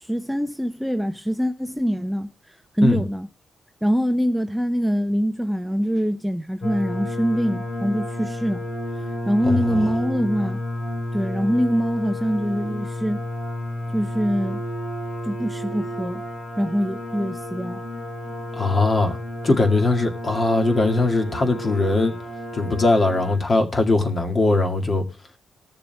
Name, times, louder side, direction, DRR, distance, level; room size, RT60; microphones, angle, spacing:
voice 1, 0.0-3.3 3.8-8.6 9.0-10.6 11.1-13.2 13.9-14.6 15.2-16.2 16.6-17.8, equal, 5° right, 0.6 m, -24 dB
sound 1, 6.6-23.4, left 1 dB, 70° left, 5.1 m, -31 dB
voice 2, 9.4-9.9 18.6-19.2 19.4-22.2 22.5-25.1, left 2 dB, 35° left, 2.0 m, -20 dB
20.0 x 6.8 x 2.3 m
cardioid pair, 115°, 0 cm